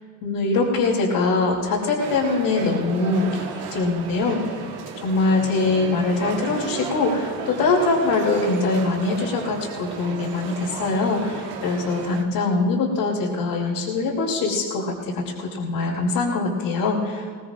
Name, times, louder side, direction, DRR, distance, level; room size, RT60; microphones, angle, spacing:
voice 1, 0.2-4.6 5.0-17.4, left 3 dB, 55° left, -5 dB, 3.0 m, -23 dB
sound 1, 2.0-12.2, right 7 dB, 65° right, 1.7 m, -34 dB
21.0 x 19.5 x 2.5 m, 2.1 s
supercardioid pair, 115°, 44 cm